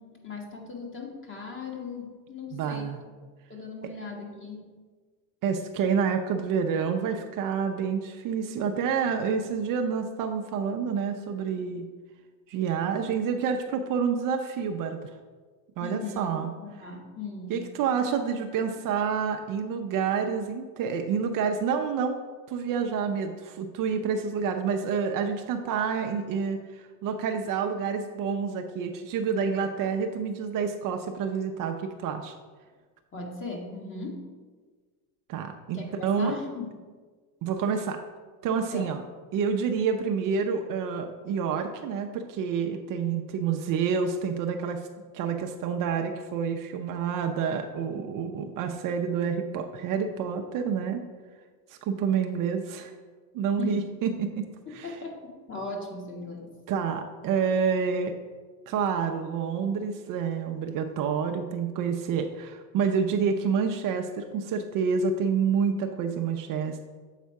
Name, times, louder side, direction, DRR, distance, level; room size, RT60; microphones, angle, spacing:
voice 1, 0.0-3.0 3.5-4.7 15.8-17.6 33.1-34.3 35.7-36.7 38.7-39.0 53.6-53.8 54.7-56.5, left 3 dB, 25° left, 0 dB, 1.6 m, -38 dB
voice 2, 2.5-3.0 5.4-11.9 12.5-15.1 15.8-16.5 17.5-22.2 22.5-32.3 35.3-36.3 37.4-38.0 38.4-39.0 39.3-44.8 45.1-51.0 51.7-52.9 53.3-54.5 54.7-54.9 56.7-58.1 58.7-66.8, right 6 dB, 45° right, 5 dB, 0.6 m, -28 dB
7.4 x 4.1 x 4.7 m, 1.4 s
supercardioid pair, 105°, 46 cm